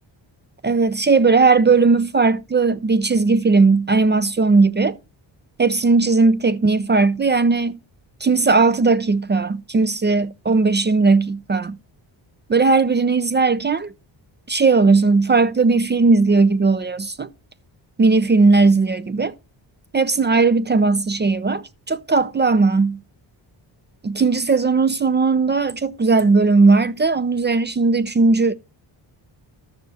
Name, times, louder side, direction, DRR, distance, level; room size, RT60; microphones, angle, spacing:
voice 1, 0.6-5.0 5.6-7.8 8.2-11.8 12.5-13.9 14.5-17.3 18.0-19.3 19.9-23.0 24.0-28.5, right 4 dB, 25° right, 0.4 m, -17 dB
13.0 x 6.4 x 2.7 m
cardioid pair, 70°, 49 cm